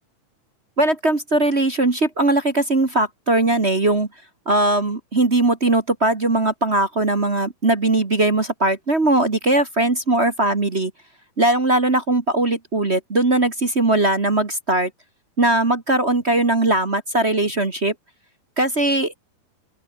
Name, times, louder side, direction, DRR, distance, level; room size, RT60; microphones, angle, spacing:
voice 1, 0.8-4.1 4.4-10.9 11.4-14.9 15.4-17.9 18.6-19.1, right 2 dB, 30° right, 1.3 m, -19 dB
open air
omnidirectional pair, 4.1 m